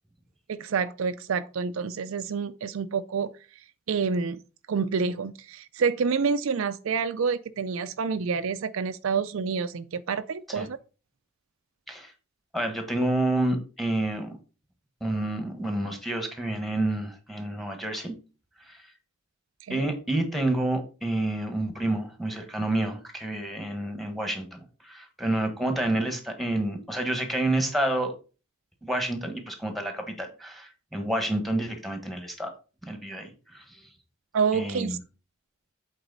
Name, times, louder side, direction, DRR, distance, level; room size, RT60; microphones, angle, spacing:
voice 1, 0.5-3.3 3.9-4.4 4.7-10.8 19.7-19.9 34.3-35.0, right 5 dB, 65° right, 0.4 m, -28 dB
voice 2, 12.5-14.4 15.0-18.1 18.7-18.8 19.7-28.1 28.8-32.5 32.8-33.8 34.5-35.0, right 1 dB, ahead, 1.3 m, -29 dB
7.9 x 4.1 x 4.0 m
head